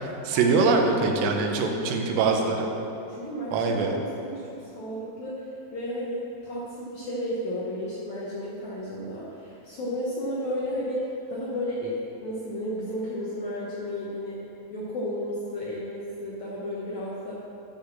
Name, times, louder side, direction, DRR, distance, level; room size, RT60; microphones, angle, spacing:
voice 1, 0.0-2.7 3.5-4.0, right 4 dB, 85° right, 3 dB, 3.1 m, -23 dB
voice 2, 1.7-2.7 3.1-14.4 14.7-17.4, equal, 70° left, -6 dB, 1.8 m, -33 dB
10.5 x 5.0 x 7.3 m, 2.9 s
omnidirectional pair, 4.8 m